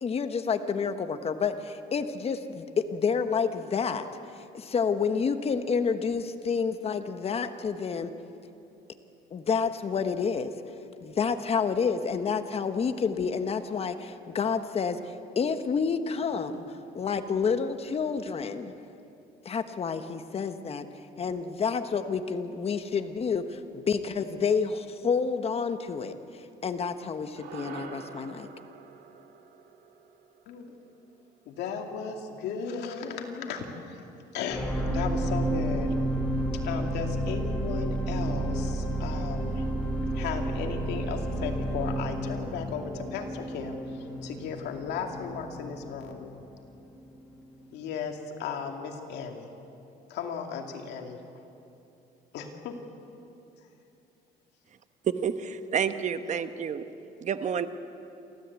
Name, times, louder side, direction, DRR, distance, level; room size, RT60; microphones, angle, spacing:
voice 1, 0.0-4.1 4.5-8.1 9.3-10.5 11.0-18.7 19.4-20.8 21.2-26.1 26.6-28.5, left 5 dB, 35° left, 8 dB, 1.2 m, -29 dB
sound 1, 27.4-31.8, right 6 dB, 70° right, 1.9 m, -47 dB
voice 2, 31.5-34.0 34.3-35.9 36.5-39.6 40.1-46.3 47.7-49.5 50.1-51.2 52.3-52.8, left 6 dB, 80° left, 3 dB, 2.5 m, -36 dB
sound 2, 34.5-46.9 47.5-47.6, right 1 dB, 5° left, 3.9 m, -31 dB
voice 3, 55.0-56.9 57.2-57.7, right 7 dB, 45° right, 10 dB, 1.1 m, -29 dB
29.0 x 13.5 x 8.3 m, 2.8 s
cardioid pair, 110°, 17 cm